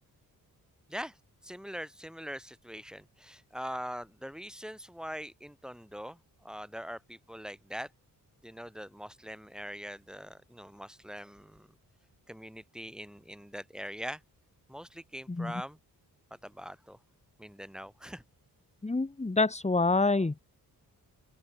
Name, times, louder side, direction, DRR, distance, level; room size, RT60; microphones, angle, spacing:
voice 1, 1.4-7.9 8.4-11.7 12.3-14.2 14.7-15.8 16.3-17.0 17.4-18.2, equal, ahead, 4.9 m, -42 dB
voice 2, 18.8-20.3, left 3 dB, 20° left, 2.0 m, -27 dB
open air
cardioid pair, 85°, 37 cm